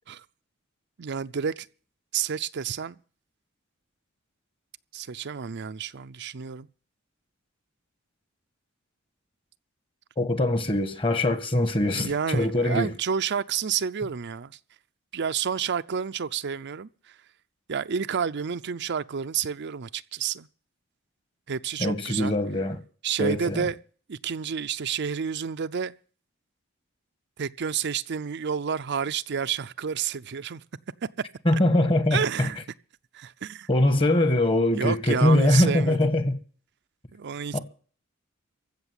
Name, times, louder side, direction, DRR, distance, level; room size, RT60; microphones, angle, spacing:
voice 1, 1.0-1.7 2.1-3.0 4.9-6.7 11.9-14.6 15.1-17.2 17.7-20.5 21.5-22.3 23.0-23.8 24.1-25.9 27.4-30.6 32.1-32.6 33.1-33.7 34.7-36.1 37.1-37.6, right 7 dB, 55° right, 0.6 m, -30 dB
voice 2, 10.2-12.9 21.8-22.8 23.2-23.6 31.4-32.2 33.7-36.3 37.5-37.6, left 1 dB, 25° left, 1.5 m, -22 dB
15.5 x 6.6 x 9.7 m
head